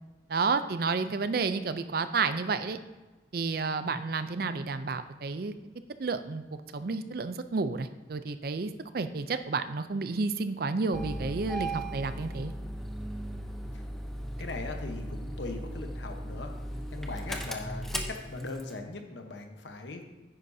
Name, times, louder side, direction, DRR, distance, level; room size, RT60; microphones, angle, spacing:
voice 1, 0.3-2.8 3.3-5.5 6.0-6.4 6.7-12.5, right 4 dB, 55° right, 11 dB, 0.5 m, -31 dB
Engine starting, 10.9-18.8, right 1 dB, ahead, 0.6 m, -37 dB
voice 2, 14.4-16.5 16.9-20.0, left 3 dB, 75° left, 4 dB, 1.0 m, -39 dB
9.9 x 9.6 x 2.7 m, 1.2 s
head